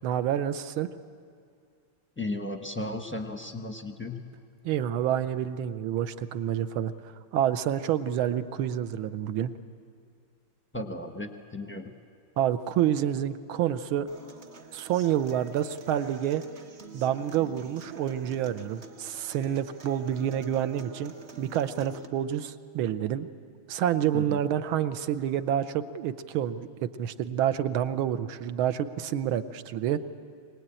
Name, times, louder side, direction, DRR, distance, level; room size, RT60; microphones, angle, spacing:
voice 1, 0.0-0.9 4.6-6.9 7.3-9.6 12.4-14.1 14.7-16.4 16.9-21.1 21.4-23.3 23.7-30.0, right 10 dB, 75° right, 12 dB, 1.6 m, -28 dB
voice 2, 2.2-4.2 10.7-11.9 24.1-24.5, left 2 dB, 10° left, 4 dB, 0.6 m, -35 dB
Human voice / Acoustic guitar, 14.1-22.1, right 4 dB, 45° right, 1.0 m, -48 dB
23.0 x 19.5 x 8.9 m, 2.3 s
omnidirectional pair, 2.4 m